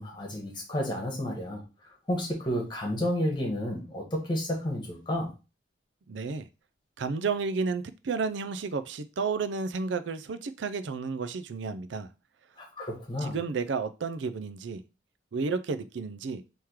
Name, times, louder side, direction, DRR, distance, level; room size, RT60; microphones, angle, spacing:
voice 1, 0.0-5.3 12.6-13.3, equal, 25° left, 1.6 m, -31 dB
voice 2, 6.1-6.5 7.0-12.1 13.2-14.8 15.3-16.4, right 4 dB, 70° right, 0.5 m, -32 dB
3.6 x 3.1 x 4.5 m
head